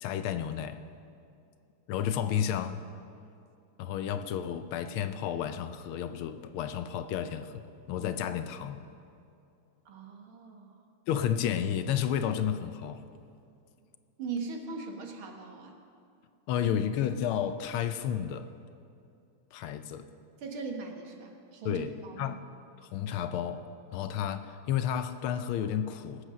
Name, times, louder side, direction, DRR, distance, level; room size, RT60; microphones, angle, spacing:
voice 1, 0.0-0.8 1.9-2.8 3.8-8.8 11.1-13.1 16.5-18.5 19.5-20.1 21.6-22.4 22.8-26.2, left 9 dB, 75° left, 1.5 m, -32 dB
voice 2, 9.9-10.8 14.2-15.8 20.4-22.4, right 4 dB, 70° right, 2.1 m, -40 dB
20.0 x 8.3 x 6.2 m
omnidirectional pair, 2.4 m